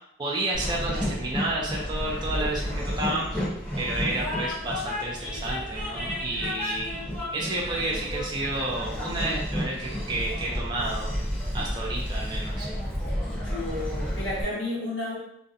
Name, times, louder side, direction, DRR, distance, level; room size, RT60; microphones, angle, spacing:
voice 1, 0.2-3.4 3.8-6.9 7.3-11.1 11.5-12.7, right 2 dB, 25° right, -4 dB, 0.4 m, -31 dB
Train, 0.5-14.4, equal, 5° left, 1.0 m, -31 dB
voice 2, 13.3-15.2, left 2 dB, 75° left, -7 dB, 0.9 m, -32 dB
2.4 x 2.1 x 2.6 m, 0.75 s
head